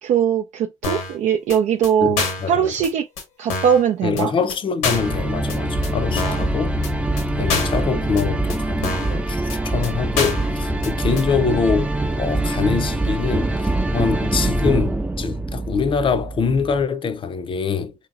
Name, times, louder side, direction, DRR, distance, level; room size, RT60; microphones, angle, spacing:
voice 1, 0.0-2.2 2.5-3.1 3.4-4.3 6.2-6.4, right 8 dB, 65° right, 0.4 m, -20 dB
sound 1, 0.8-1.2 1.5-1.6 1.8-1.9 2.2-2.5 2.8-2.9 3.2-3.3 3.5-3.8 4.2-4.3 4.5-4.6 4.8-5.2 5.5-5.6 5.8-5.9 6.2-6.5 6.8-6.9 7.2-7.3 7.5-7.8 8.2-8.3 8.5-8.6 8.8-9.2 9.5-9.6 9.8-9.9 10.2-10.5 10.8-10.9 11.2-11.3, left 4 dB, 85° left, 1.1 m, -26 dB
voice 2, 2.0-2.7 4.0-6.8 7.3-17.9, left 5 dB, 40° left, 0.5 m, -24 dB
sound 2, 4.9-16.8, right 2 dB, 10° right, 0.4 m, -24 dB
3.0 x 2.8 x 2.4 m
supercardioid pair, 65°, 13 cm